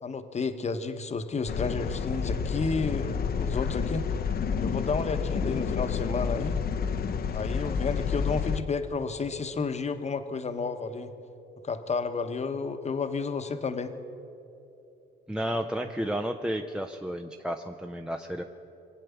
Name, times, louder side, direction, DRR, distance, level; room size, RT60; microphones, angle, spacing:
voice 1, 0.0-4.1 4.6-6.6 7.3-11.1 11.6-13.9, left 4 dB, 35° left, 9 dB, 1.0 m, -31 dB
sound 1, 1.5-8.6, left 6 dB, 50° left, 0.7 m, -29 dB
voice 2, 15.3-18.4, equal, 5° right, 5 dB, 0.6 m, -32 dB
23.5 x 8.4 x 7.0 m, 2.9 s
cardioid pair, 90°, 20 cm